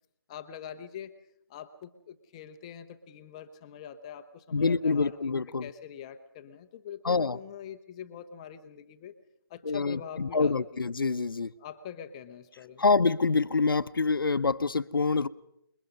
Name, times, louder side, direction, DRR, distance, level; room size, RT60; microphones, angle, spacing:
voice 1, 0.3-1.1 1.5-5.3 5.6-9.1 9.5-10.6 11.6-12.9, left 9 dB, 15° left, 0.8 m, -44 dB
voice 2, 4.5-5.7 7.0-7.4 9.6-11.5 12.8-15.3, left 4 dB, 65° left, 0.9 m, -26 dB
27.0 x 22.0 x 5.4 m
figure-of-eight pair, 160°, 12 cm